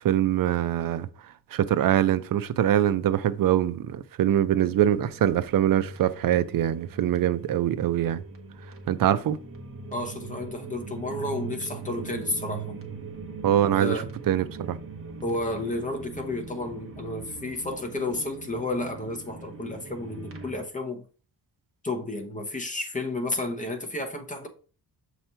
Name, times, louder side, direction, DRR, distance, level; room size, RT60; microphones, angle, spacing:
voice 1, 0.0-1.1 1.5-8.2 8.9-9.4 13.4-13.9 14.3-14.8, right 11 dB, 55° right, 0.5 m, -23 dB
sound 1, 4.7-20.6, right 4 dB, 30° right, 1.0 m, -41 dB
voice 2, 9.9-12.8 13.7-14.1 15.2-21.0 21.8-24.5, left 2 dB, 20° left, 0.9 m, -32 dB
6.7 x 3.0 x 5.5 m
wide cardioid pair, 165°, 41 cm